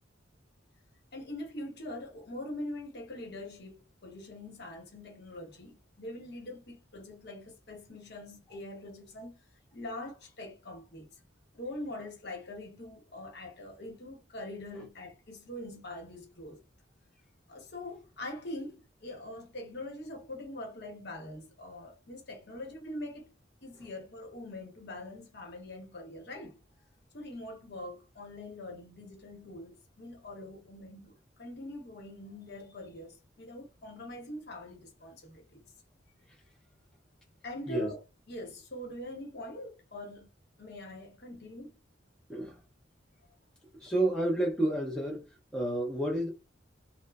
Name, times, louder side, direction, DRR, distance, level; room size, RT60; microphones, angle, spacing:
voice 1, 1.1-9.4 9.7-11.1 11.5-16.6 17.5-23.3 23.6-26.6 27.1-35.6 37.4-38.0 38.3-40.3 40.6-41.7, left 1 dB, 60° left, 1.0 m, -43 dB
voice 2, 43.8-45.2 45.5-46.3, right 1 dB, 5° left, 0.5 m, -30 dB
2.9 x 2.0 x 2.3 m
head